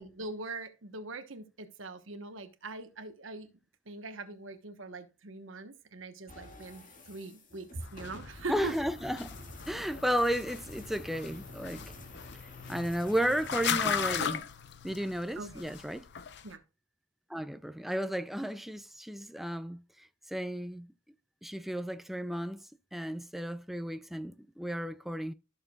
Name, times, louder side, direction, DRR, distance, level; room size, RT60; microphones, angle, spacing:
voice 1, 0.0-3.5 3.9-8.7 15.4-15.6 16.4-16.6, right 3 dB, 80° right, 1.2 m, -42 dB
sound 1, 6.3-14.3, left 1 dB, 45° left, 2.1 m, -49 dB
sound 2, 7.8-16.5, left 7 dB, 60° left, 0.7 m, -38 dB
voice 2, 8.5-9.3 9.7-11.8 12.7-14.4 14.8-16.1 17.3-20.9 21.4-25.3, equal, ahead, 0.3 m, -33 dB
13.5 x 6.6 x 2.3 m
head